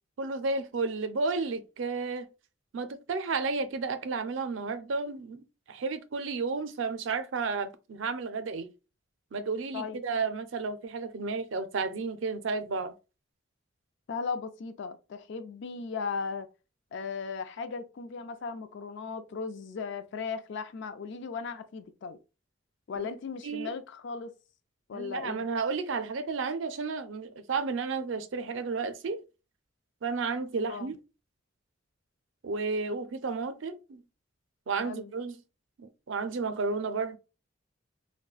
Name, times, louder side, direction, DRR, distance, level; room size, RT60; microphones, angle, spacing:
voice 1, 0.2-2.3 2.7-8.7 9.3-12.9 23.0-23.1 23.4-23.7 24.9-29.2 30.0-31.0 32.4-34.0 34.7-35.4 35.8-37.2, right 4 dB, 70° right, 0.5 m, -32 dB
voice 2, 14.1-16.5 16.9-22.2 22.9-24.3 24.9-25.5 30.7-30.9 34.8-35.1, left 5 dB, 65° left, 0.4 m, -37 dB
3.9 x 2.2 x 2.3 m
head